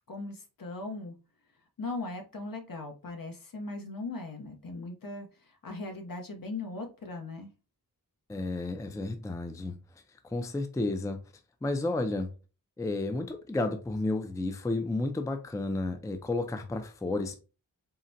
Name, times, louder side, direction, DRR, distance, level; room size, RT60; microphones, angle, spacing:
voice 1, 0.1-1.1 1.8-7.5, left 3 dB, 65° left, 0.8 m, -39 dB
voice 2, 8.3-9.8 10.2-11.2 11.6-12.3 12.8-17.4, left 2 dB, 10° left, 0.4 m, -32 dB
3.8 x 2.1 x 2.6 m
wide cardioid pair, 60°, 37 cm